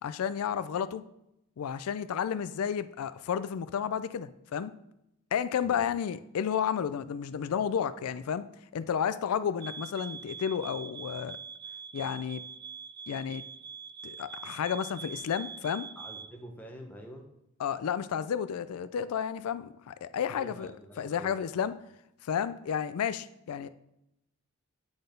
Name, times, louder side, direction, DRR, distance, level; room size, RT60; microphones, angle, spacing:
voice 1, 0.0-1.0 1.6-4.7 5.3-8.5 8.7-11.4 11.9-12.4 13.1-13.4 14.0-15.9 17.6-20.7 21.0-21.7 22.2-23.7, left 8 dB, 85° left, 13 dB, 0.4 m, -32 dB
sound 1, 9.6-16.4, right 7 dB, 45° right, 0.3 m, -44 dB
voice 2, 16.0-17.3 20.3-21.5, equal, 10° left, 1 dB, 0.9 m, -46 dB
8.6 x 4.1 x 5.2 m, 0.83 s
head